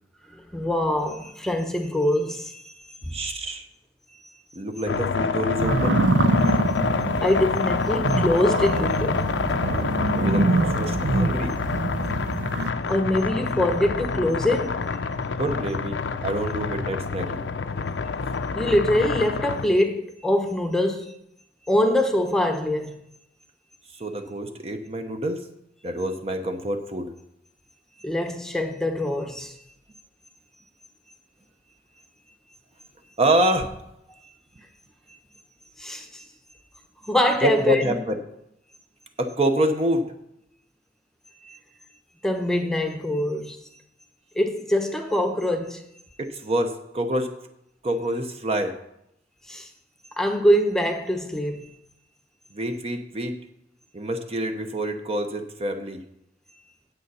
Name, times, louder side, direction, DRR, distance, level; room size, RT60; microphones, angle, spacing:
voice 1, 0.3-2.7 3.0-3.1 7.2-9.3 12.9-14.8 18.5-21.1 21.7-23.0 28.0-29.5 35.8-36.2 37.1-38.0 41.4-41.6 42.2-43.6 44.3-45.8 49.5-49.7 50.2-51.7, left 1 dB, 5° left, 0.8 m, -24 dB
voice 2, 3.1-3.6 4.5-6.0 10.1-11.6 15.4-17.4 23.9-25.5 25.8-27.1 33.2-33.7 37.4-38.2 39.2-40.1 46.2-47.3 47.8-48.8 52.5-53.3 53.9-56.0, right 1 dB, 35° right, 0.8 m, -26 dB
sound 1, 4.9-19.7, left 5 dB, 80° left, 0.6 m, -27 dB
sound 2, 5.6-12.7, right 2 dB, 85° right, 0.7 m, -25 dB
9.2 x 7.9 x 5.5 m
head